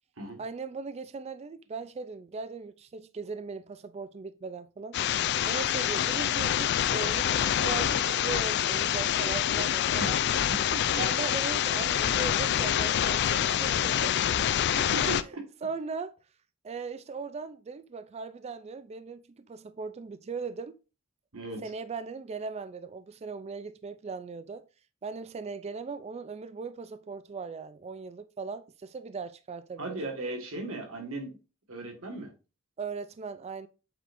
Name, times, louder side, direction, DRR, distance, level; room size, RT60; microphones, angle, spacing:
voice 1, 0.4-5.0 5.5-10.2 11.0-14.2 14.9-15.1 15.6-16.1 16.6-20.7 21.6-24.6 25.0-30.0 32.8-33.7, right 5 dB, 30° right, 0.3 m, -38 dB
sound 1, 4.9-15.2, left 10 dB, 55° left, 0.3 m, -26 dB
voice 2, 14.7-15.4 21.3-21.6 29.8-31.4 31.7-32.3, right 2 dB, 75° right, 1.8 m, -36 dB
7.7 x 4.8 x 2.6 m
head